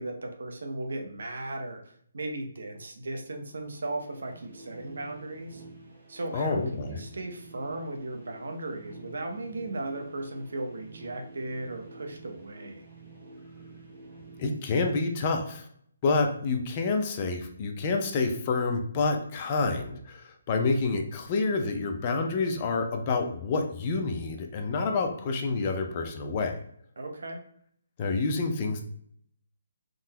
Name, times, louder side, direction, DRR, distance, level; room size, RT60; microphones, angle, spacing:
voice 1, 0.0-5.6 6.1-12.9 27.0-27.4, right 2 dB, 70° right, 4 dB, 0.6 m, -36 dB
sound 1, 3.4-15.3, right 3 dB, 30° right, 1.0 m, -49 dB
voice 2, 6.3-7.0 14.4-15.7 16.0-26.6 28.0-28.8, left 3 dB, 25° left, 4 dB, 0.3 m, -28 dB
3.6 x 2.0 x 2.8 m, 0.64 s
hypercardioid pair, 170°, 0 cm